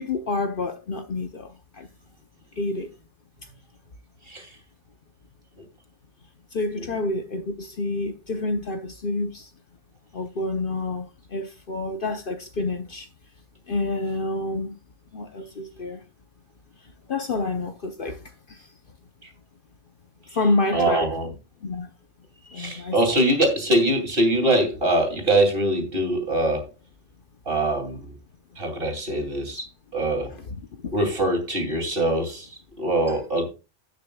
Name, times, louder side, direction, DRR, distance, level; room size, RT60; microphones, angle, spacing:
voice 1, 0.0-1.9 2.6-2.9 6.5-9.5 10.1-13.1 13.7-14.8 15.1-16.0 17.1-18.7 20.3-21.1 21.6-21.9 22.5-23.2 30.3-30.9, left 2 dB, 50° left, 0.9 m, -28 dB
voice 2, 20.7-21.3 22.5-26.7 27.5-28.1 28.6-29.7 29.9-30.3 30.9-33.5, right 1 dB, 50° right, 3.0 m, -23 dB
16.5 x 6.5 x 2.3 m
omnidirectional pair, 1.3 m